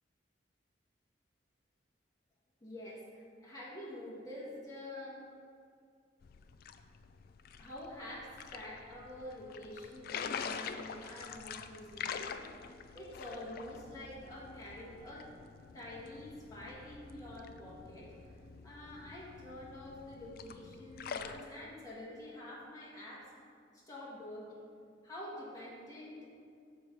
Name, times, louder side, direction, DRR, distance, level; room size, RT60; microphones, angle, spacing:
voice 1, 2.6-5.2 7.6-12.5 12.9-15.3 15.7-18.4 18.6-23.3 23.7-24.6 25.0-26.3, left 1 dB, 20° left, -7 dB, 1.5 m, -47 dB
sound 1, 6.2-21.4, left 6 dB, 50° left, 0.3 m, -46 dB
6.7 x 4.5 x 5.4 m, 2.3 s
head